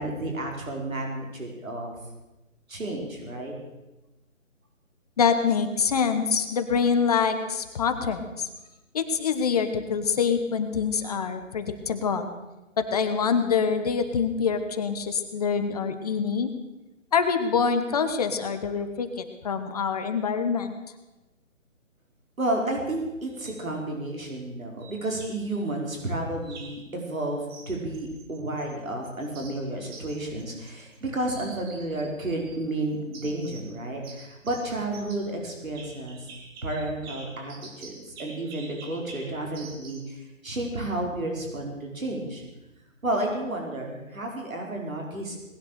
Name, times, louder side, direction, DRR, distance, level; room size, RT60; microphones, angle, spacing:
voice 1, 0.0-1.9 2.7-3.6 22.4-36.3 36.6-42.4 43.0-45.4, right 1 dB, 85° right, 0 dB, 5.0 m, -31 dB
voice 2, 5.2-8.5 8.9-12.3 12.8-16.5 17.1-20.7, left 6 dB, 30° left, 8 dB, 1.2 m, -25 dB
sound 1, 23.3-23.6 24.8-25.6 26.4-26.9 27.5-28.7 29.0-31.0 31.3-32.6 33.1-33.7 34.0-40.1, right 4 dB, 20° right, 1.8 m, -47 dB
19.5 x 11.0 x 6.7 m, 1.0 s
figure-of-eight pair, 155°, 40 cm